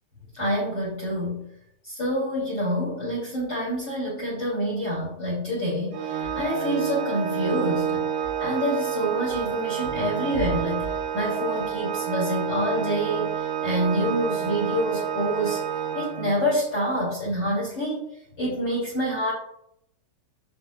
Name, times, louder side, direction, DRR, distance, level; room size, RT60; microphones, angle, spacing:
voice 1, 0.4-1.4 1.9-8.0 8.4-10.9 11.1-13.3 13.6-15.6 15.9-18.0 18.4-19.3, equal, 30° left, -3 dB, 3.0 m, -27 dB
Organ, 5.9-16.7, right 8 dB, 70° right, 2.0 m, -29 dB
12.5 x 5.9 x 2.3 m, 0.72 s
omnidirectional pair, 5.0 m